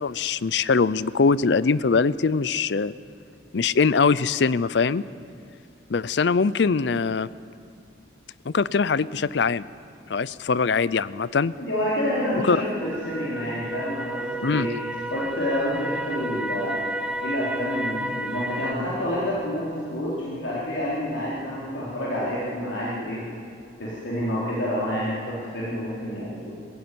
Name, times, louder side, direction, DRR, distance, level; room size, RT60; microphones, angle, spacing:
voice 1, 0.0-2.9 3.5-5.0 5.9-7.3 8.5-9.6 10.1-11.5 12.5-12.6 14.4-14.7, left 5 dB, 70° left, 19 dB, 0.5 m, -22 dB
voice 2, 11.6-14.7 15.1-16.8 17.2-23.2 23.8-26.5, equal, 90° left, -7 dB, 4.2 m, -28 dB
sound 1, 12.8-18.7, right 1 dB, 5° right, 0.8 m, -32 dB
21.5 x 15.5 x 9.6 m, 2.4 s
head